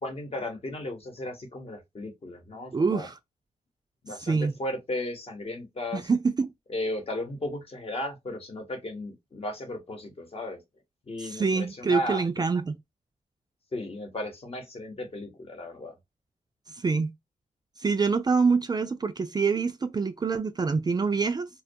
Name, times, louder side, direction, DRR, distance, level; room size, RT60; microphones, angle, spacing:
voice 1, 0.0-3.1 4.0-6.1 6.7-10.6 11.1-12.4 13.7-16.0, left 1 dB, 45° left, 0.9 m, -35 dB
voice 2, 2.7-3.1 4.2-4.5 5.9-6.5 11.2-12.8 16.7-17.1 17.8-21.5, right 4 dB, 30° right, 0.3 m, -25 dB
2.2 x 2.2 x 2.6 m
cardioid pair, 80°, 14 cm